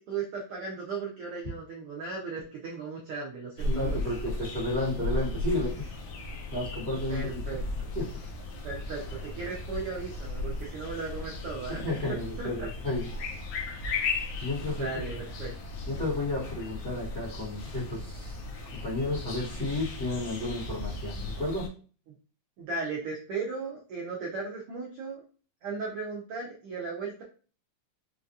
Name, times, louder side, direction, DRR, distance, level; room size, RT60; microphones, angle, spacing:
voice 1, 0.0-4.0 4.2-4.3 7.1-7.6 8.6-12.7 14.8-15.5 22.6-25.2 25.6-27.2, right 4 dB, 85° right, -2 dB, 1.2 m, -36 dB
sound 1, 3.6-21.7, left 2 dB, 85° left, 1.1 m, -36 dB
voice 2, 3.6-5.9 6.5-7.4 7.9-8.2 11.7-13.1 14.4-15.2 15.9-18.4 18.7-21.7, left 2 dB, 40° left, -10 dB, 1.3 m, -32 dB
4.9 x 2.4 x 2.6 m, 0.39 s
omnidirectional pair, 3.4 m